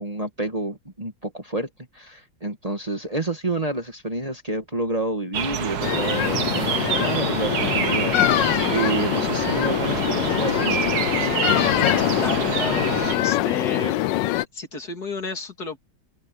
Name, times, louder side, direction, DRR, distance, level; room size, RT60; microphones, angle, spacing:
voice 1, 0.0-1.7 1.9-10.8, right 2 dB, 20° right, 1.8 m, -29 dB
sound 1, 5.3-13.1, right 8 dB, 60° right, 1.6 m, -27 dB
sound 2, 5.8-14.4, left 15 dB, 80° left, 1.3 m, -23 dB
voice 2, 12.2-14.0 14.5-15.8, left 3 dB, 55° left, 3.4 m, -32 dB
omnidirectional pair, 1.9 m